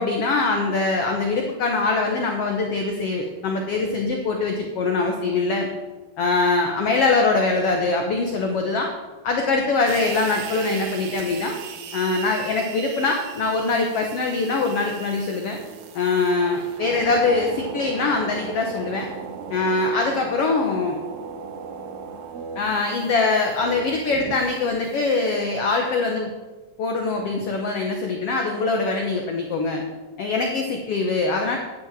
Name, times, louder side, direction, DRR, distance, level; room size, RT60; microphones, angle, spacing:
voice 1, 0.0-5.7 6.2-8.9 9.2-11.6 11.9-15.6 15.9-19.1 19.5-21.0 22.6-26.3 26.8-29.8 30.2-31.6, left 3 dB, 60° left, 3 dB, 1.7 m, -23 dB
sound 1, 9.9-25.5, right 6 dB, 65° right, 2.0 m, -37 dB
10.5 x 7.8 x 7.6 m, 1.2 s
omnidirectional pair, 4.0 m